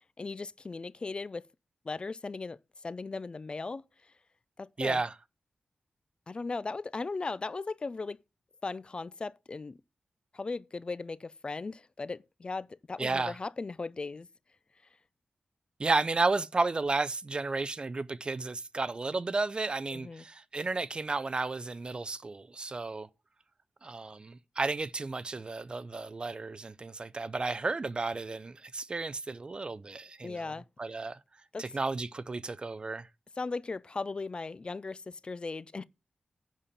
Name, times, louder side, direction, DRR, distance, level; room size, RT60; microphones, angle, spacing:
voice 1, 0.2-1.4 1.8-3.8 4.6-5.0 6.3-8.2 8.6-9.8 10.3-14.3 19.9-20.2 30.2-30.7 31.5-31.6 33.4-35.8, left 3 dB, 35° left, 0.4 m, -37 dB
voice 2, 4.8-5.1 13.0-13.4 15.8-23.1 23.8-30.4 30.8-31.2 31.6-33.1, right 3 dB, 35° right, 0.5 m, -32 dB
10.5 x 4.2 x 7.3 m
wide cardioid pair, 110°, 3 cm